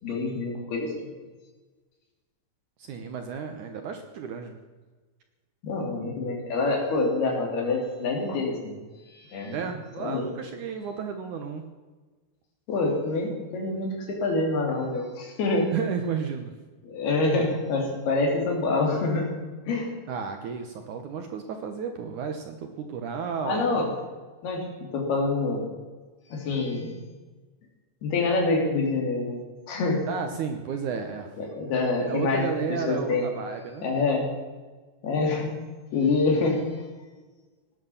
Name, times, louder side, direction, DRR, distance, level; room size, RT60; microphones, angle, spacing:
voice 1, 0.0-1.1 5.6-8.7 9.1-9.6 10.0-10.2 12.7-15.7 16.8-19.3 19.7-19.9 23.5-23.9 24.4-25.6 26.3-26.9 28.0-29.4 29.7-30.1 31.6-32.5 32.9-33.3 33.8-34.3 35.0-35.5 35.9-36.8, left 3 dB, 75° left, 1 dB, 5.0 m, -26 dB
voice 2, 2.8-4.6 9.5-11.6 15.7-16.5 20.1-23.8 30.1-31.3 32.0-33.8, right 6 dB, 65° right, 6 dB, 2.1 m, -32 dB
17.5 x 10.5 x 7.2 m, 1.3 s
omnidirectional pair, 4.6 m